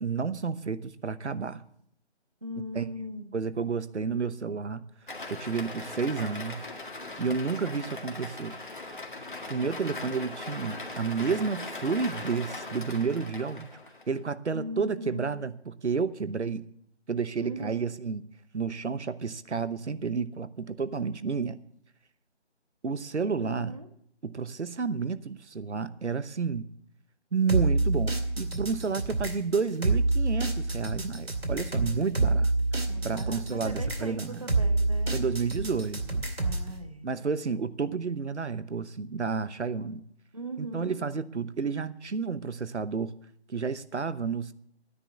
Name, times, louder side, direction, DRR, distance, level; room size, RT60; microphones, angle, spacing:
voice 1, 0.0-1.6 2.7-2.9 3.3-4.8 5.3-6.6 7.2-8.6 9.5-13.7 14.1-16.6 17.1-18.2 18.5-21.6 22.8-23.7 24.2-26.7 27.3-34.5 35.1-36.2 37.0-40.0 40.6-43.1 43.5-44.5, right 5 dB, 90° right, 14 dB, 1.0 m, -31 dB
voice 2, 2.4-3.4 14.5-15.3 17.4-17.9 23.4-23.9 32.8-35.1 36.4-37.0 40.3-41.0, equal, 30° right, 7 dB, 1.0 m, -39 dB
sound 1, 5.1-14.2, left 2 dB, 45° left, 1.9 m, -40 dB
sound 2, 27.5-36.7, right 2 dB, 60° right, 2.4 m, -27 dB
12.5 x 9.9 x 6.9 m, 0.68 s
figure-of-eight pair, 180°, 34 cm